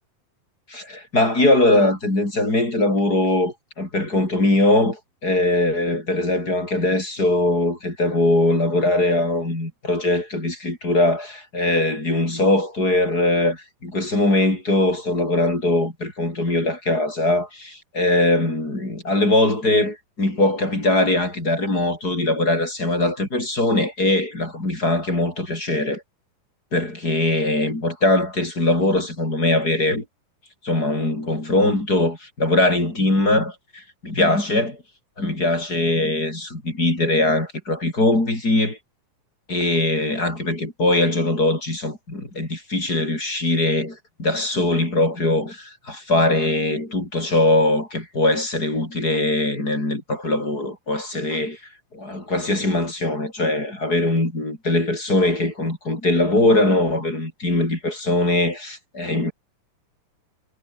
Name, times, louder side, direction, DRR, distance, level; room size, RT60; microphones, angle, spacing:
voice 1, 0.7-26.0 26.7-30.0 30.6-34.8 35.2-38.8 39.5-51.6 51.9-59.3, left 2 dB, 25° left, 7.3 m, -21 dB
omnidirectional pair, 4.0 m